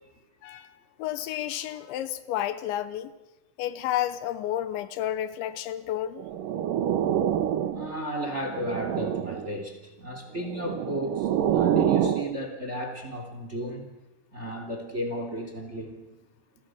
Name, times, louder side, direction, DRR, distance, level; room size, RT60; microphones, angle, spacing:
voice 1, 1.0-3.1 3.6-6.2, left 12 dB, 80° left, 3.2 m, -31 dB
sound 1, 6.2-8.0 8.4-9.5 10.4-12.3, right 10 dB, 70° right, 2.1 m, -26 dB
voice 2, 7.7-13.9 14.3-16.0, equal, 20° right, 2.5 m, -34 dB
29.5 x 23.5 x 6.3 m
omnidirectional pair, 5.4 m